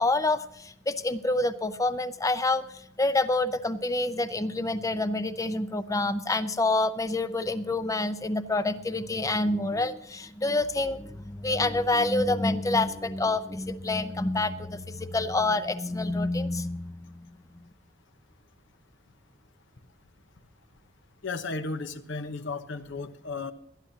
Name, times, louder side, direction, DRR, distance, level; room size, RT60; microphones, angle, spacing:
voice 1, 0.0-17.6, left 2 dB, 15° left, 12 dB, 0.6 m, -27 dB
voice 2, 21.2-23.5, left 3 dB, 65° left, 10 dB, 1.0 m, -34 dB
20.5 x 11.5 x 2.8 m, 0.75 s
head